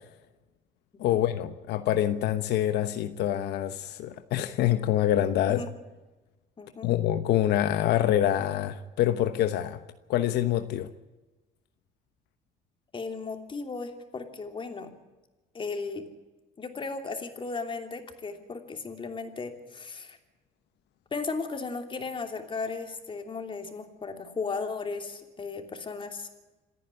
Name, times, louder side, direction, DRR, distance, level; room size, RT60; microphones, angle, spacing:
voice 1, 1.0-5.6 6.8-9.8 10.1-10.9, left 12 dB, 80° left, 10 dB, 1.1 m, -26 dB
voice 2, 6.6-6.9 12.9-14.9 15.5-16.1 16.6-20.2 21.1-26.3, left 4 dB, 30° left, 6 dB, 3.0 m, -36 dB
27.5 x 10.0 x 9.9 m, 1.1 s
cardioid pair, 110°, 17 cm